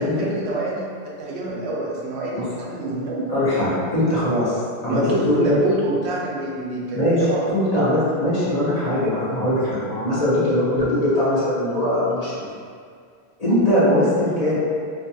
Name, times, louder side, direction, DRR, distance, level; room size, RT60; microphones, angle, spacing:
voice 1, 0.0-3.3 4.9-7.8, right 1 dB, 90° right, -4 dB, 0.9 m, -26 dB
voice 2, 3.3-5.6 6.9-7.2 7.5-12.5 13.4-14.6, left 1 dB, 40° left, -10 dB, 0.8 m, -21 dB
2.7 x 2.3 x 2.6 m, 2.1 s
omnidirectional pair, 1.1 m